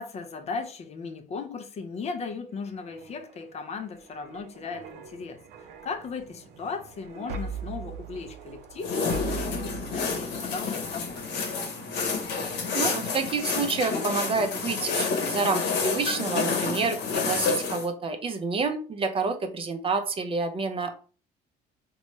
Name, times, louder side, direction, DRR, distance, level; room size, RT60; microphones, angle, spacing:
voice 1, 0.0-11.2, left 5 dB, 40° left, 0.4 m, -37 dB
sound 1, 2.6-14.9 15.3-15.5, right 4 dB, 90° right, 0.5 m, -42 dB
sound 2, 8.8-17.9, left 4 dB, 85° left, 0.8 m, -29 dB
voice 2, 12.7-20.9, right 4 dB, 35° right, 0.5 m, -28 dB
3.0 x 2.2 x 3.0 m
cardioid pair, 110°, 17 cm